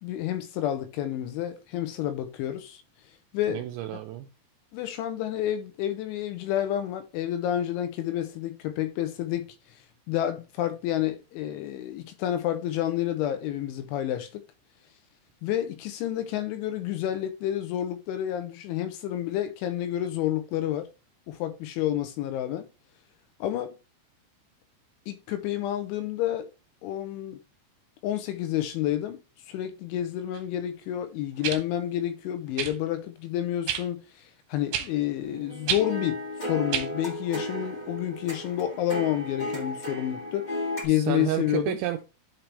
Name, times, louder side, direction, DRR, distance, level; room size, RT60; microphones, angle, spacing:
voice 1, 0.0-2.8 3.3-3.6 3.9-4.0 4.7-9.6 10.1-14.4 15.4-20.9 21.3-22.7 23.4-23.7 25.1-26.5 26.8-27.4 28.0-29.2 29.5-34.2 34.5-40.5 40.8-41.8, left 12 dB, 80° left, 3.0 m, -29 dB
voice 2, 3.5-4.3 40.9-42.0, right 13 dB, 90° right, 2.6 m, -30 dB
sound 1, 30.3-30.4 31.4-31.6 32.6-32.8 33.7-33.8 34.7-34.9 35.7-35.8 36.7-36.9 37.8-37.9, right 9 dB, 70° right, 2.9 m, -29 dB
sound 2, 35.2-40.8, left 1 dB, 15° left, 1.4 m, -34 dB
11.5 x 4.4 x 3.3 m
omnidirectional pair, 5.8 m